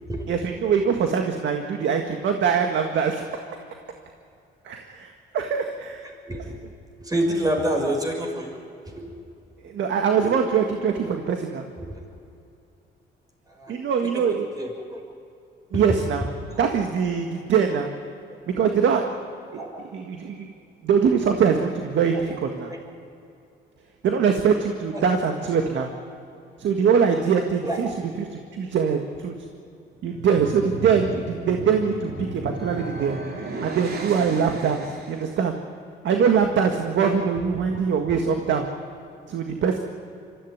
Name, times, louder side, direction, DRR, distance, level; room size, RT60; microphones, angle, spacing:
voice 1, 0.3-3.3 4.6-6.1 9.6-11.6 13.7-14.5 15.7-16.3 16.6-17.9 18.5-19.1 19.5-19.6 19.9-20.5 20.8-22.7 24.0-25.9 26.6-27.9 28.2-29.3 30.0-33.2 33.6-35.5 36.0-38.7 39.3-39.8, right 6 dB, 70° right, 4 dB, 1.8 m, -23 dB
voice 2, 6.2-6.6 7.0-8.6 8.8-9.1 11.8-12.0 13.5-13.8 14.0-15.0 15.7-16.0 19.6-19.7 22.7-22.8 24.9-25.0 25.7-25.9 27.6-27.8 38.1-38.2, right 1 dB, 20° right, 0 dB, 6.2 m, -28 dB
sound 1, 30.0-35.4, right 2 dB, 50° right, 2.7 m, -35 dB
24.0 x 14.5 x 9.6 m, 2.6 s
cardioid pair, 90°, 20 cm